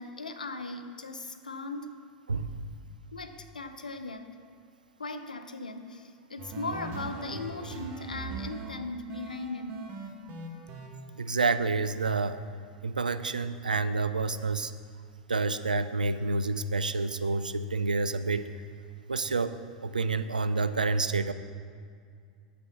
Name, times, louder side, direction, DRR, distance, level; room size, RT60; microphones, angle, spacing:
voice 1, 0.0-1.9 3.1-4.3 5.0-9.8, left 3 dB, 80° left, 8 dB, 0.5 m, -38 dB
voice 2, 2.3-2.7 11.2-12.4 12.8-14.7 15.3-18.5 19.1-19.5 19.8-21.3, right 3 dB, 80° right, 11 dB, 0.3 m, -28 dB
sound 1, 6.4-8.7 9.1-10.9, right 4 dB, 35° right, 1.2 m, -39 dB
7.2 x 6.0 x 5.7 m, 2.2 s
figure-of-eight pair, 90°, 4 cm